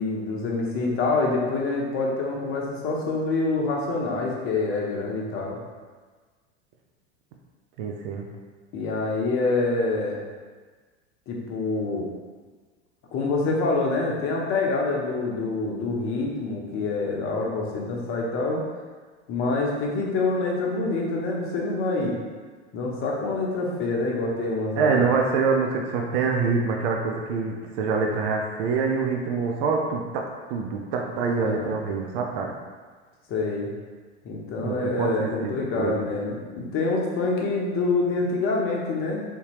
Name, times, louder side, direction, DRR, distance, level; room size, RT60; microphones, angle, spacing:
voice 1, 0.0-5.6 8.7-10.2 11.3-12.1 13.1-18.6 19.3-22.2 22.7-25.0 31.4-31.7 33.3-33.7 34.2-39.2, left 3 dB, 35° left, -1 dB, 0.8 m, -26 dB
voice 2, 7.8-8.3 24.8-32.6 34.6-36.0, right 5 dB, 50° right, 1 dB, 0.5 m, -25 dB
3.6 x 2.7 x 2.9 m, 1.4 s
figure-of-eight pair, 85°, 36 cm